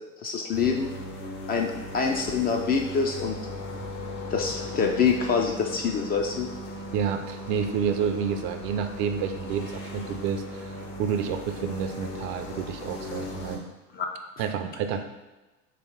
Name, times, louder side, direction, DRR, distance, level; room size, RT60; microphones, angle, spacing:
voice 1, 0.2-0.9 1.5-3.4 4.3-6.5 13.9-14.1, left 5 dB, 25° left, 2 dB, 0.3 m, -25 dB
sound 1, 0.5-13.6, left 1 dB, 65° left, 1.2 m, -37 dB
voice 2, 6.9-13.6 14.4-15.0, right 7 dB, 55° right, 7 dB, 0.5 m, -29 dB
3.1 x 3.0 x 4.3 m, 1.1 s
hypercardioid pair, 75°, 41 cm